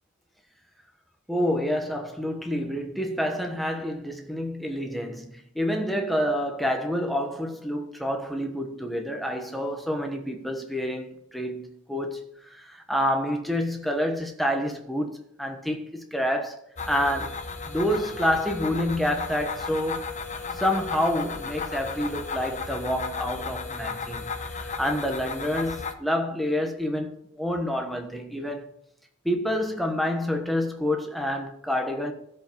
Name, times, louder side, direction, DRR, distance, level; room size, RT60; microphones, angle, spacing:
voice 1, 1.3-12.2 12.5-16.6 16.9-17.4 17.7-20.1 20.5-28.7 29.2-32.1, equal, ahead, 1.2 m, -28 dB
sound 1, 16.8-25.9, left 4 dB, 35° left, 0.9 m, -34 dB
15.0 x 5.5 x 5.4 m
head